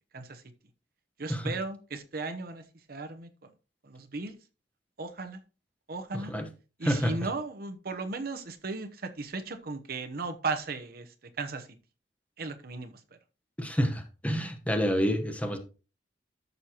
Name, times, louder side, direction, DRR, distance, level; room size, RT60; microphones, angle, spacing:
voice 1, 1.2-2.6 2.9-3.3 3.8-4.3 5.0-5.4 5.9-6.3 6.8-11.7 12.4-12.9, right 3 dB, 60° right, 0.9 m, -36 dB
voice 2, 6.1-6.5 6.8-7.1 13.6-15.6, equal, 10° left, 1.1 m, -28 dB
13.0 x 6.6 x 3.0 m
head